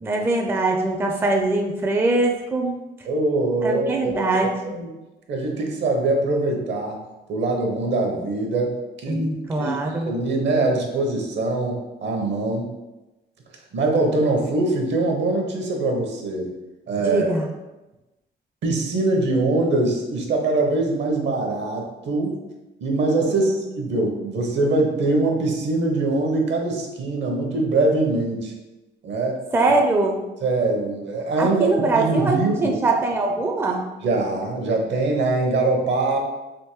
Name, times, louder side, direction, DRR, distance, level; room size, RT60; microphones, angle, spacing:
voice 1, 0.0-2.7 3.6-4.6 9.1-10.1 17.0-17.5 23.3-23.6 29.5-30.3 31.4-33.9, right 2 dB, 10° right, 2 dB, 0.4 m, -22 dB
voice 2, 3.0-4.9 5.3-7.0 7.3-9.3 9.6-12.7 13.7-16.5 16.9-17.3 18.6-22.4 22.8-28.5 29.0-29.4 30.4-32.8 34.0-36.2, right 2 dB, 65° right, 2 dB, 0.8 m, -23 dB
3.5 x 2.6 x 3.0 m, 1.0 s
cardioid pair, 90°, 20 cm